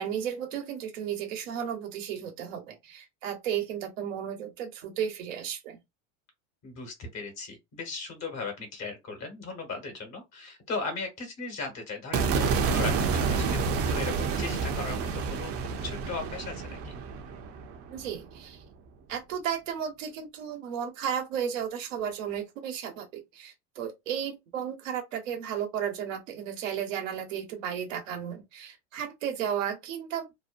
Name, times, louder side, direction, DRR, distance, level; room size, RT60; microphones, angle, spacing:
voice 1, 0.0-5.8 17.9-18.6 19.1-30.3, right 8 dB, 85° right, 1.1 m, -34 dB
voice 2, 6.6-15.5 15.8-16.9, left 4 dB, 45° left, 1.3 m, -37 dB
sound 1, 12.1-18.4, right 5 dB, 40° right, 0.7 m, -29 dB
2.8 x 2.1 x 2.5 m
supercardioid pair, 105°, 37 cm